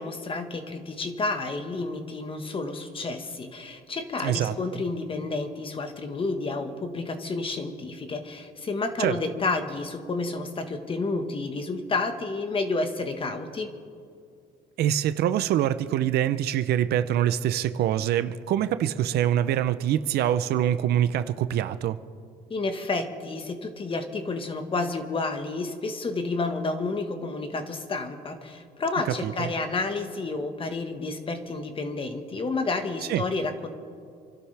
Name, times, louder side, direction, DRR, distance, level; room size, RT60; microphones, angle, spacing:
voice 1, 0.0-13.7 22.5-33.7, left 3 dB, 30° left, 7 dB, 1.5 m, -30 dB
voice 2, 4.2-4.8 9.0-9.1 14.8-22.0 29.1-29.5 33.1-33.2, right 11 dB, 70° right, 12 dB, 0.7 m, -25 dB
28.0 x 12.0 x 3.5 m, 2.3 s
cardioid pair, 110°, 17 cm